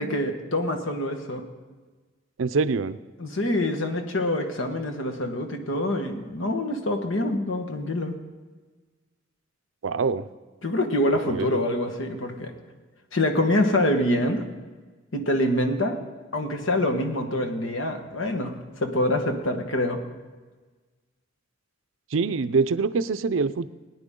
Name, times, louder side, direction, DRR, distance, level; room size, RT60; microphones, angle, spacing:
voice 1, 0.0-1.4 3.2-8.1 10.6-12.5 13.1-14.5 15.1-16.0 16.3-20.0, left 1 dB, 80° left, 5 dB, 1.4 m, -25 dB
voice 2, 2.4-3.0 9.8-10.2 11.1-11.6 22.1-23.7, right 4 dB, 80° right, 14 dB, 0.5 m, -25 dB
18.5 x 9.8 x 3.8 m, 1.3 s
head